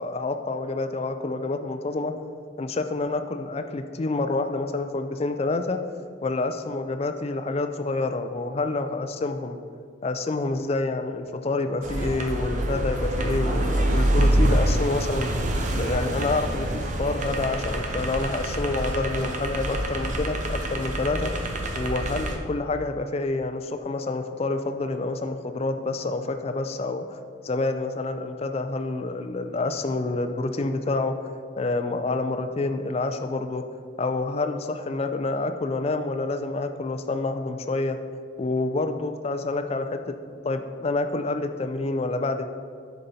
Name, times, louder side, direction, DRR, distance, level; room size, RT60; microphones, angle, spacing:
voice 1, 0.0-2.1 2.6-5.8 6.2-9.6 10.0-15.3 15.7-21.3 21.8-31.1 31.6-33.6 34.0-38.0 38.4-40.1 40.4-42.5, left 3 dB, 30° left, 8 dB, 0.3 m, -28 dB
sound 1, 11.8-22.4, right 1 dB, 40° right, 0.6 m, -26 dB
6.9 x 5.3 x 4.1 m, 2.2 s
head